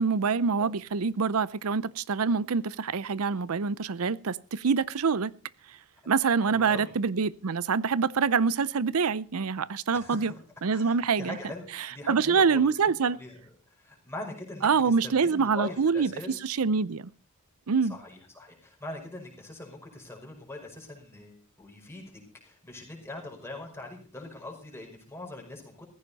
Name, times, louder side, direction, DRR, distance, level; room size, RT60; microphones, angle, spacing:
voice 1, 0.0-5.3 6.1-10.3 10.6-11.4 12.1-13.2 14.6-17.1 17.7-18.0, right 5 dB, 80° right, 0.6 m, -25 dB
voice 2, 6.3-6.9 9.9-10.4 10.7-12.7 13.0-13.4 13.7-16.4 17.9-22.0 22.4-25.9, left 2 dB, 10° left, 5.1 m, -42 dB
15.0 x 15.0 x 4.1 m
head